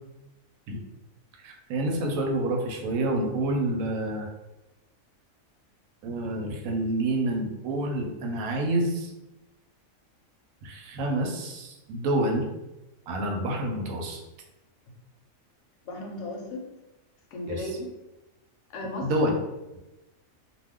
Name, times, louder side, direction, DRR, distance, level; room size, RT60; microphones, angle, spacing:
voice 1, 1.4-4.3 6.0-9.1 10.6-12.5 13.1-14.2 17.5-17.6 19.0-19.3, right 1 dB, 85° right, 1 dB, 1.0 m, -28 dB
voice 2, 15.8-16.7 17.3-18.0 18.7-19.1, left 1 dB, 65° left, 1 dB, 0.9 m, -35 dB
2.4 x 2.2 x 3.5 m, 0.99 s
omnidirectional pair, 1.4 m